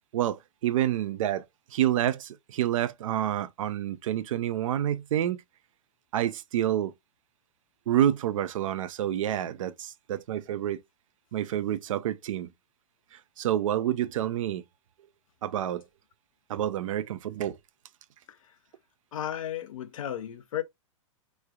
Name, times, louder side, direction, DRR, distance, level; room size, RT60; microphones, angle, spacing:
voice 1, 0.1-1.4 1.7-5.4 6.1-6.9 7.9-10.8 11.3-12.5 13.4-14.6 15.4-15.8 16.5-17.6, right 11 dB, 70° right, 0.5 m, -28 dB
voice 2, 19.1-20.6, left 11 dB, 75° left, 0.6 m, -34 dB
4.5 x 3.2 x 2.3 m
hypercardioid pair, 115°, 18 cm